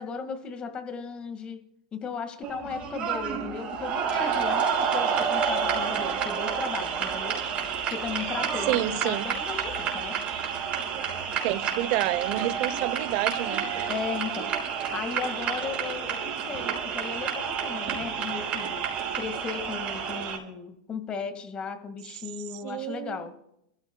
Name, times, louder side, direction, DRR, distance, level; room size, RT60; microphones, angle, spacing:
voice 1, 0.0-1.6 1.9-7.4 7.9-10.2 13.9-14.5 14.9-18.9 19.1-23.3, left 6 dB, 25° left, 8 dB, 1.9 m, -36 dB
sound 1, 2.4-20.4, right 7 dB, 35° right, 5.2 m, -29 dB
voice 2, 8.7-9.3 11.4-13.6 22.6-23.2, right 14 dB, 50° right, 16 dB, 0.9 m, -28 dB
29.0 x 14.5 x 2.3 m, 0.77 s
hypercardioid pair, 110°, 4 cm